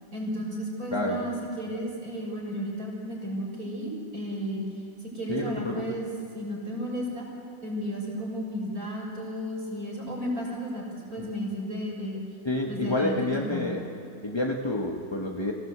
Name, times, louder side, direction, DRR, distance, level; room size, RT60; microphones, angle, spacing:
voice 1, 0.1-4.6 5.0-6.1 6.3-7.3 7.6-10.8 11.1-12.2 12.7-13.6, equal, 70° right, -3 dB, 6.7 m, -33 dB
voice 2, 5.3-6.0 11.2-11.3 12.4-13.8 14.2-15.5, left 2 dB, 20° left, 0 dB, 1.3 m, -29 dB
25.0 x 17.5 x 8.2 m, 2.8 s
omnidirectional pair, 1.7 m